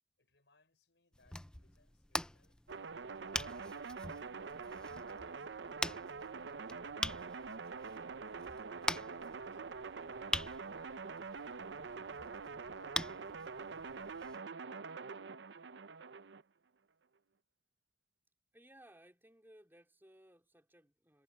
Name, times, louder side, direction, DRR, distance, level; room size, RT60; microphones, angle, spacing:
voice 1, 0.2-3.3 4.0-8.7 9.1-9.6 10.1-11.7, left 2 dB, 75° left, 5.3 m, -73 dB
sound 1, 1.1-14.4, left 1 dB, 5° left, 0.5 m, -44 dB
sound 2, 2.7-16.4, right 4 dB, 70° right, 0.7 m, -45 dB
voice 2, 18.5-21.2, right 1 dB, 10° right, 4.4 m, -61 dB
head